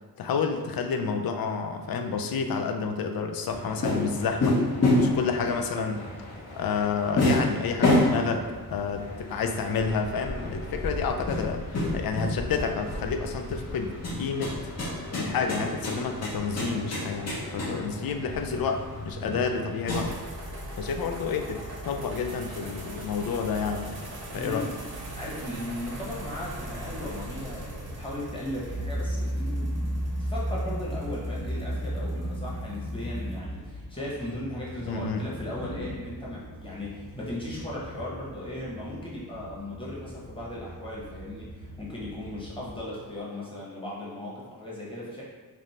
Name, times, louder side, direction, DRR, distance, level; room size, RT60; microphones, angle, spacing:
voice 1, 0.2-4.6 5.0-6.1 6.6-14.6 15.1-20.1 20.8-24.0 24.3-24.7 34.9-35.3, left 5 dB, 70° left, 5 dB, 0.5 m, -30 dB
sound 1, 3.5-20.1, left 1 dB, 45° left, 0.9 m, -29 dB
sound 2, 19.9-33.4, right 1 dB, 75° right, 1.0 m, -41 dB
voice 2, 24.3-24.8 25.2-45.2, left 1 dB, 15° left, -6 dB, 1.2 m, -37 dB
sound 3, 27.4-42.8, equal, 85° left, 0.9 m, -36 dB
3.4 x 2.5 x 4.2 m, 1.4 s
wide cardioid pair, 105°, 37 cm